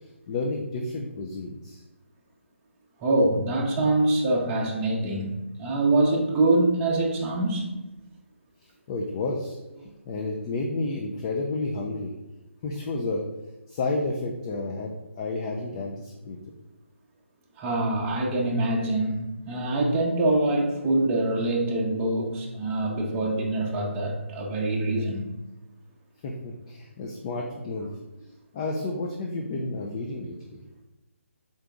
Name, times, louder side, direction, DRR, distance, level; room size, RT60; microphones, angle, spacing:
voice 1, 0.0-1.8 8.6-12.1 12.6-13.3 13.7-16.4 26.2-28.0 28.5-30.6, left 2 dB, 25° left, 0 dB, 0.4 m, -31 dB
voice 2, 3.0-7.8 17.6-25.3, right 2 dB, 20° right, -2 dB, 0.7 m, -24 dB
3.9 x 3.6 x 3.4 m, 1.0 s
figure-of-eight pair, 150°, 7 cm